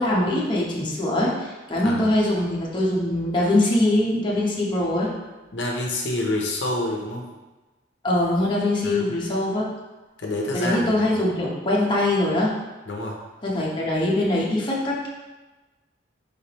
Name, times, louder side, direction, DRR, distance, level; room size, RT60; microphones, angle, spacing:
voice 1, 0.0-5.1 8.0-9.7 10.5-12.5 13.4-15.1, left 1 dB, 25° left, -5 dB, 0.8 m, -22 dB
voice 2, 1.8-2.1 5.5-7.3 8.8-9.1 10.2-11.2 12.9-13.2, left 1 dB, 75° left, -1 dB, 0.7 m, -28 dB
4.9 x 3.3 x 2.9 m, 1.1 s
head